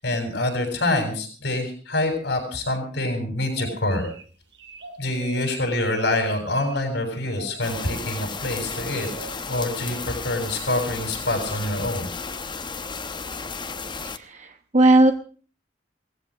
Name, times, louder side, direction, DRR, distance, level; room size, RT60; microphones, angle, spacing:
voice 1, 0.0-4.1 5.0-9.1 9.5-12.1, left 1 dB, 75° left, 4 dB, 7.9 m, -26 dB
sound 1, 3.6-4.2 4.5-5.5 5.8-6.8 7.4-7.9 8.7-9.3, right 4 dB, 75° right, 7.0 m, -41 dB
sound 2, 7.6-14.2, left 4 dB, 25° left, 0.9 m, -33 dB
voice 2, 14.2-15.1, right 2 dB, 40° right, 6 dB, 1.0 m, -17 dB
19.0 x 15.5 x 5.0 m, 0.42 s
head